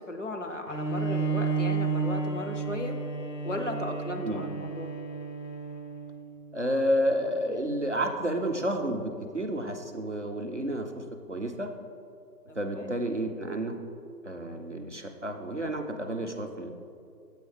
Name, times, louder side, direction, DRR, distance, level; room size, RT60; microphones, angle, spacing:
voice 1, 0.0-3.0 3.4-4.9 12.5-13.0, left 1 dB, 50° left, 4 dB, 0.6 m, -36 dB
Bowed string instrument, 0.7-6.3, right 4 dB, 90° left, 0.9 m, -31 dB
voice 2, 6.5-11.7 12.5-13.8 14.2-16.7, equal, 50° right, 3 dB, 0.5 m, -30 dB
7.1 x 4.9 x 4.8 m, 2.4 s
figure-of-eight pair, 175°, 48 cm